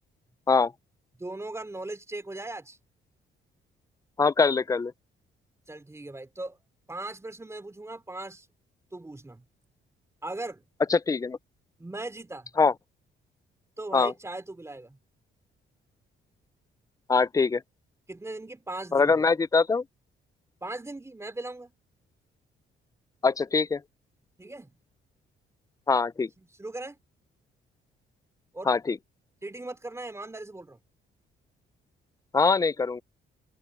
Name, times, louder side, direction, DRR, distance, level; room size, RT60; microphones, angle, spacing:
voice 1, 1.2-2.8 5.7-6.6 6.9-8.5 8.9-9.4 10.2-10.6 11.8-12.5 13.8-15.0 18.1-19.2 20.6-21.7 24.4-24.7 26.4-27.0 28.5-28.8 29.4-30.8, right 2 dB, 15° right, 3.0 m, -38 dB
voice 2, 4.2-4.9 10.9-11.4 12.6-12.7 13.9-14.1 17.1-17.6 18.9-19.8 23.2-23.8 25.9-26.3 28.7-28.9 32.3-33.0, left 4 dB, 15° left, 0.4 m, -23 dB
cardioid pair, 90°, 20 cm